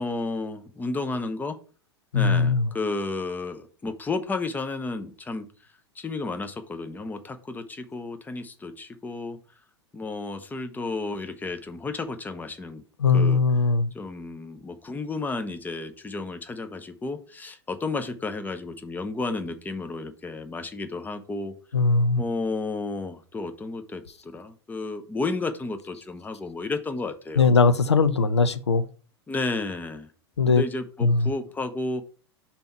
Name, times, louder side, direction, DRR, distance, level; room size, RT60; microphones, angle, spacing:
voice 1, 0.0-1.6 2.1-5.5 5.9-9.4 9.9-12.8 13.1-13.4 13.9-21.5 22.2-27.6 29.3-30.1 30.4-32.0, left 3 dB, 10° left, 0.7 m, -32 dB
voice 2, 2.1-2.7 13.0-13.9 21.7-22.2 27.4-28.8 30.4-30.6 31.0-31.3, left 4 dB, 80° left, 0.5 m, -20 dB
5.4 x 4.3 x 4.4 m
figure-of-eight pair, 90°, 14 cm